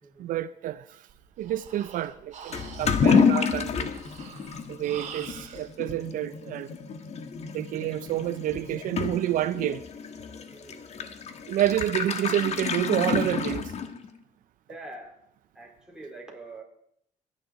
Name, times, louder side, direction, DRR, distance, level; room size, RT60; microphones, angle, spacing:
voice 1, 0.2-1.0 1.4-3.9 4.7-6.7 7.5-9.8 11.5-13.7, right 12 dB, 70° right, 0.5 m, -29 dB
Breathing, 1.1-5.7, right 7 dB, 55° right, 2.1 m, -45 dB
Toilet flush / Liquid, 2.5-14.2, left 6 dB, 50° left, 1.4 m, -29 dB
voice 2, 10.5-10.8 14.7-15.2 15.5-16.6, right 2 dB, 5° right, 4.3 m, -44 dB
24.0 x 10.0 x 4.1 m
cardioid pair, 100°, 14 cm